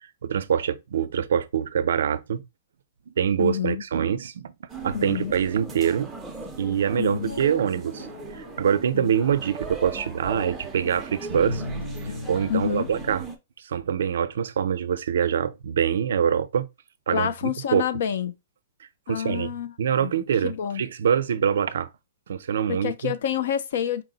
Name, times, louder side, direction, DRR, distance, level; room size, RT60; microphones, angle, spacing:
voice 1, 0.2-2.4 3.1-4.5 4.8-6.1 6.6-8.1 8.3-11.6 12.3-13.2 13.6-16.7 17.1-17.8 19.1-19.5 19.8-21.9 22.3-23.1, right 8 dB, 65° right, 0.4 m, -24 dB
voice 2, 3.4-3.8 4.9-5.3 7.0-7.3 8.9-9.1 12.5-12.9 17.1-18.3 19.1-20.1 20.4-20.8 22.7-24.0, left 9 dB, 55° left, 0.4 m, -28 dB
sound 1, 4.7-13.4, right 4 dB, 5° right, 0.4 m, -39 dB
sound 2, 4.8-9.3 10.7-13.1, left 2 dB, 75° left, 1.8 m, -38 dB
4.6 x 2.0 x 3.8 m
hypercardioid pair, 175°, 0 cm